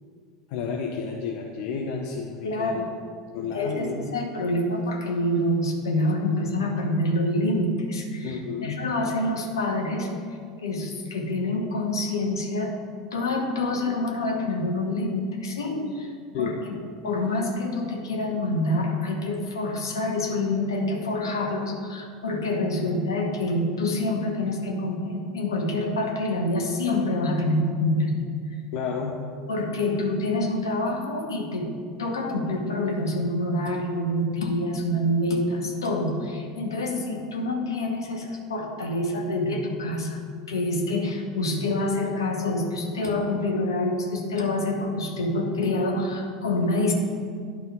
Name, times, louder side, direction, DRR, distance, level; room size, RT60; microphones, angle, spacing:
voice 1, 0.5-2.8 3.3-3.9 8.2-8.9 16.3-16.6 28.7-29.2, left 6 dB, 55° left, 1 dB, 0.6 m, -31 dB
voice 2, 2.4-2.8 3.4-10.1 10.6-12.7 13.1-16.1 16.4-16.7 17.0-28.1 29.5-31.7 32.0-40.2 40.5-46.9, left 1 dB, 70° left, 2 dB, 1.1 m, -26 dB
10.5 x 3.7 x 5.5 m, 2.1 s
figure-of-eight pair, 80°, 2 cm